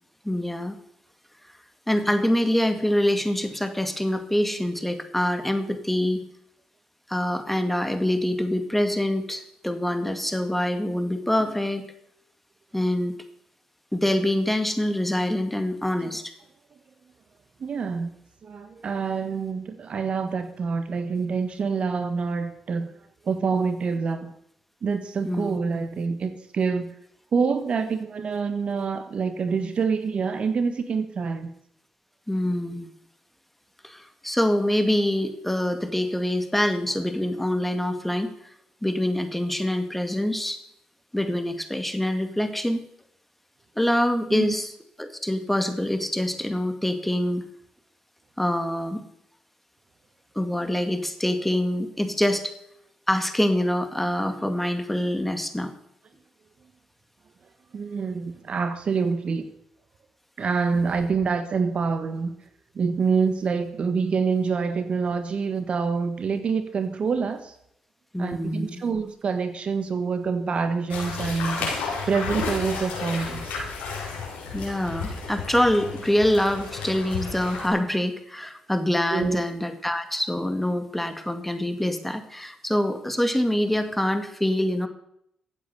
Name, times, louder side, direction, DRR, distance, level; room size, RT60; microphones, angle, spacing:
voice 1, 0.2-0.8 1.9-6.2 7.1-11.8 12.7-13.2 13.9-16.3 25.2-25.8 32.3-32.9 33.8-38.3 38.8-40.6 41.1-42.8 43.8-44.7 45.0-47.4 48.4-49.0 50.4-52.5 53.1-55.7 68.1-68.8 74.5-84.9, left 1 dB, 5° left, 8 dB, 2.0 m, -25 dB
voice 2, 17.6-18.1 18.4-22.9 23.2-24.3 24.8-26.9 27.3-31.5 44.3-44.5 57.7-59.5 60.4-62.3 62.7-67.5 68.2-71.8 72.1-73.6 79.1-79.5, right 5 dB, 55° right, 9 dB, 1.4 m, -26 dB
sound 1, 70.9-77.7, left 4 dB, 85° left, 4.8 m, -32 dB
15.0 x 8.5 x 6.9 m, 0.73 s
supercardioid pair, 55°, 2 cm